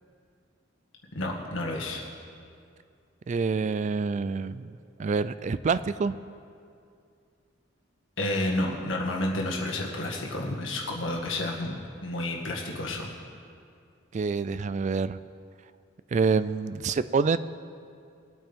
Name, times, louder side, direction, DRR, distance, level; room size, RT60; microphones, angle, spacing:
voice 1, 1.1-2.0 8.2-13.1, left 1 dB, 70° left, -1 dB, 1.8 m, -30 dB
voice 2, 3.3-4.7 5.0-6.2 14.1-15.2 16.1-17.4, right 5 dB, 35° right, 14 dB, 0.3 m, -27 dB
20.5 x 8.8 x 3.6 m, 2.4 s
head